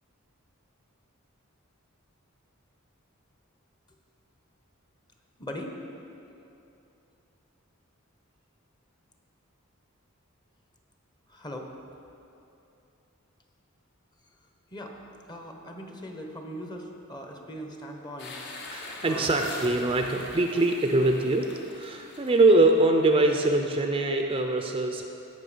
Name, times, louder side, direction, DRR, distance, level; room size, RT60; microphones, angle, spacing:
voice 1, 5.4-5.8 11.3-11.7 14.7-15.0 15.3-18.4 19.0-19.3, equal, 20° left, 3 dB, 0.9 m, -39 dB
sound 1, 18.2-23.4, left 3 dB, 55° left, 1.3 m, -44 dB
voice 2, 18.7-21.5 21.7-25.1, right 2 dB, 25° right, 3 dB, 0.5 m, -23 dB
16.0 x 5.9 x 5.0 m, 2.8 s
head